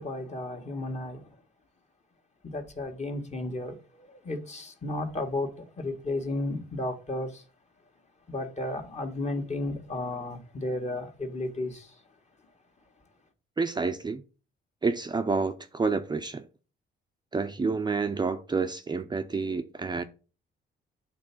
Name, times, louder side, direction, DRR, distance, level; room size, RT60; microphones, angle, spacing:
voice 1, 0.0-1.4 2.4-7.4 8.3-12.0, left 2 dB, 35° left, 1.9 m, -33 dB
voice 2, 13.6-14.2 14.8-16.5 17.3-20.0, right 4 dB, 20° right, 0.6 m, -29 dB
8.6 x 3.5 x 6.1 m
cardioid pair, 90°, 20 cm